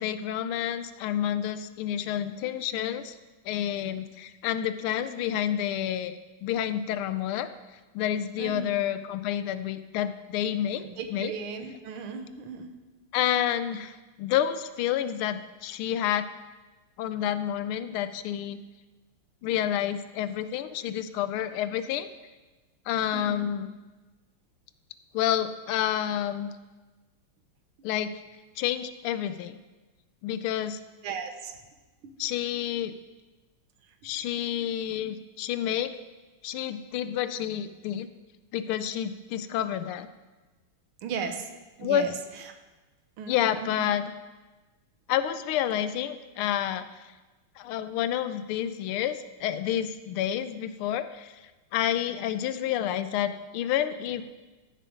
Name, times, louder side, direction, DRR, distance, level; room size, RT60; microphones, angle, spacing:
voice 1, 0.0-3.1 3.4-7.5 7.9-10.8 11.1-11.3 13.1-16.3 17.0-18.6 19.4-22.1 22.9-23.7 25.1-26.5 27.8-28.1 28.6-29.6 30.2-30.8 32.2-32.9 34.0-35.9 36.4-38.1 38.5-40.1 41.8-42.1 43.3-44.1 45.1-47.0 47.6-51.4 51.7-54.2, left 10 dB, 80° left, 12 dB, 1.4 m, -29 dB
voice 2, 8.4-8.8 10.8-12.7 23.1-23.5 31.0-31.6 32.0-32.3 34.0-34.1 41.0-41.5 41.8-42.5 43.2-43.9, right 6 dB, 80° right, 6 dB, 1.8 m, -37 dB
13.5 x 6.7 x 5.0 m, 1.2 s
omnidirectional pair, 2.4 m